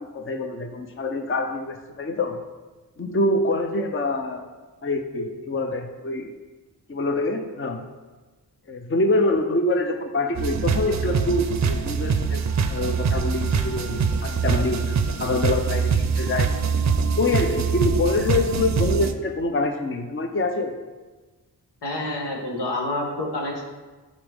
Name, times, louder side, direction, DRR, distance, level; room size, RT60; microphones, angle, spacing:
voice 1, 0.0-2.4 3.0-4.5 4.8-6.3 6.9-7.9 8.7-12.4 12.7-16.6 17.1-20.7, left 2 dB, 30° left, 6 dB, 0.7 m, -25 dB
sound 1, 10.3-19.1, right 5 dB, 45° right, 0.6 m, -24 dB
voice 2, 21.8-23.6, left 1 dB, 80° left, -1 dB, 1.4 m, -28 dB
8.5 x 4.0 x 3.5 m, 1.3 s
cardioid pair, 50°, 41 cm